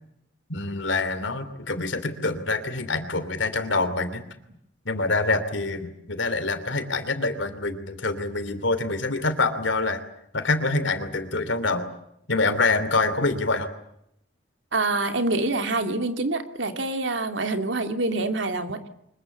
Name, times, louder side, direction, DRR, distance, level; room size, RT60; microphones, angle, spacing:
voice 1, 0.5-4.2 4.8-10.0 10.3-11.9 12.3-13.7, left 3 dB, 80° left, 11 dB, 3.0 m, -25 dB
voice 2, 14.7-18.9, right 2 dB, 75° right, 6 dB, 2.6 m, -26 dB
25.0 x 22.0 x 8.5 m, 0.77 s
head